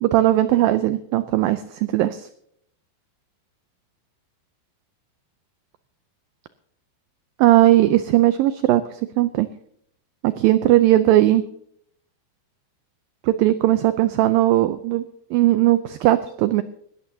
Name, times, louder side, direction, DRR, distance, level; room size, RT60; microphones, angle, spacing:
voice 1, 0.0-2.3 7.4-8.8 9.2-9.5 10.2-11.4 13.2-15.0 15.3-16.6, right 14 dB, 90° right, 12 dB, 2.0 m, -18 dB
19.5 x 14.0 x 2.8 m, 0.69 s
omnidirectional pair, 4.9 m